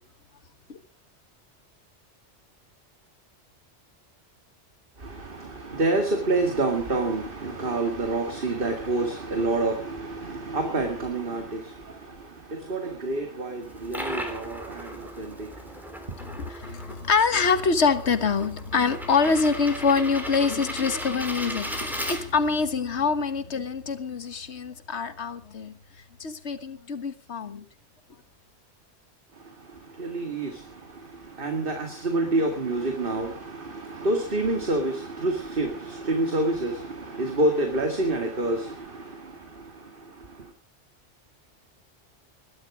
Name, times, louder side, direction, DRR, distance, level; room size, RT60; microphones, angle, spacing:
voice 1, 5.0-16.3 29.3-40.5, right 2 dB, 50° right, 2.3 m, -28 dB
sound 1, 13.6-22.6, equal, ahead, 3.2 m, -37 dB
voice 2, 16.2-25.7 26.2-27.6, left 5 dB, 70° left, 1.7 m, -25 dB
20.5 x 12.5 x 4.9 m
omnidirectional pair, 1.2 m